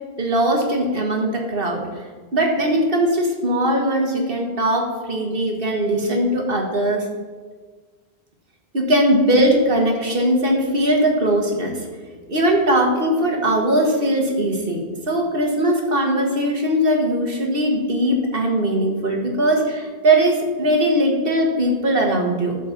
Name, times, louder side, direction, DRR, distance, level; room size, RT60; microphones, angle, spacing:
voice 1, 0.2-1.8 2.3-7.1 8.7-11.7 12.3-22.6, right 1 dB, 60° right, 1 dB, 1.7 m, -20 dB
12.0 x 4.2 x 7.2 m, 1.4 s
omnidirectional pair, 1.1 m